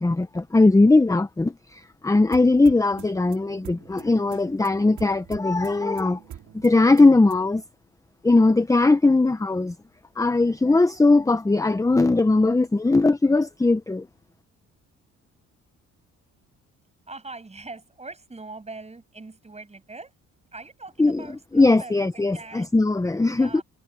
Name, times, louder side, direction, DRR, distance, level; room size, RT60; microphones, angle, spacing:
voice 1, 0.0-6.2 6.5-7.6 8.2-9.7 10.2-14.1 21.0-21.2 21.5-23.6, left 2 dB, 10° left, 0.8 m, -19 dB
sound 1, 2.3-7.6, right 10 dB, 70° right, 3.3 m, -45 dB
voice 2, 17.1-20.1 20.5-22.7 23.2-23.6, right 3 dB, 20° right, 7.8 m, -42 dB
cardioid pair, 90°, 30 cm